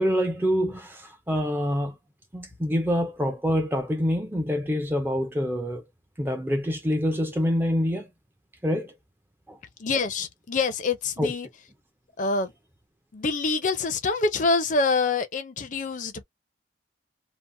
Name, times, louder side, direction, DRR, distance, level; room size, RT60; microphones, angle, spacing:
voice 1, 0.0-1.9 2.3-5.8 6.2-8.1 8.6-8.9 9.5-9.6 11.2-11.3, equal, 10° right, 0.4 m, -26 dB
voice 2, 9.8-11.5 12.2-12.5 13.1-16.2, left 3 dB, 40° left, 0.5 m, -26 dB
2.7 x 2.1 x 2.6 m
head